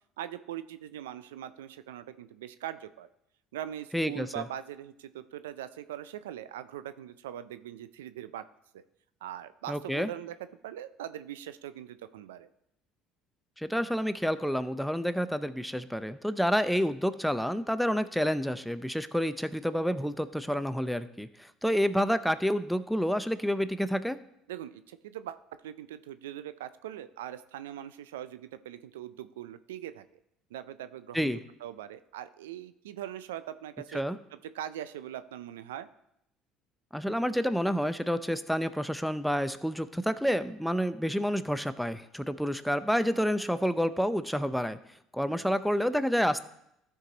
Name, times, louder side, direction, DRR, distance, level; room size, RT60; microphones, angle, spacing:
voice 1, 0.2-3.1 3.5-8.4 8.7-8.8 9.2-10.3 10.6-12.5 24.5-25.4 25.6-30.0 30.5-31.3 31.6-34.0 34.5-35.9 45.2-45.6, right 11 dB, 85° right, 13 dB, 0.4 m, -41 dB
voice 2, 3.9-4.4 9.7-10.1 13.6-24.2 31.1-31.4 33.9-34.2 36.9-44.8 45.1-46.4, equal, ahead, 12 dB, 0.6 m, -29 dB
14.0 x 4.7 x 4.0 m, 0.78 s
hypercardioid pair, 70°, 0 cm